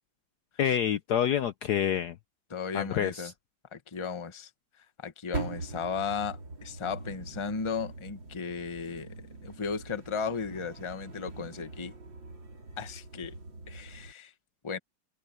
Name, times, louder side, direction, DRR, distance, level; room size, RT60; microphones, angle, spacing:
voice 1, 0.6-2.2 2.7-3.3, left 9 dB, 65° left, 1.1 m, -27 dB
voice 2, 2.5-3.3 3.7-4.5 5.0-9.1 9.4-11.9 12.8-13.3 13.7-14.3 14.6-14.8, left 5 dB, 20° left, 0.9 m, -35 dB
sound 1, 5.3-14.1, right 3 dB, 65° right, 4.5 m, -42 dB
omnidirectional pair, 2.2 m